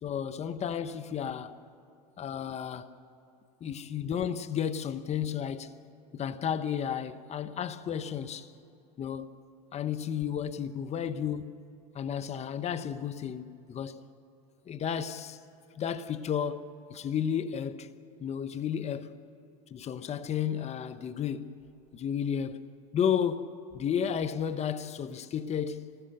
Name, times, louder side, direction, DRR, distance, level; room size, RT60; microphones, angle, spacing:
voice 1, 0.0-1.6 2.2-2.9 3.6-5.7 6.1-8.5 9.0-9.3 9.7-11.6 11.9-14.0 14.7-15.4 15.7-17.9 18.2-19.2 19.7-21.7 21.9-22.7 22.9-25.9, left 8 dB, 30° left, 1.1 m, -33 dB
25.5 x 19.5 x 6.7 m
hypercardioid pair, 90°, 21 cm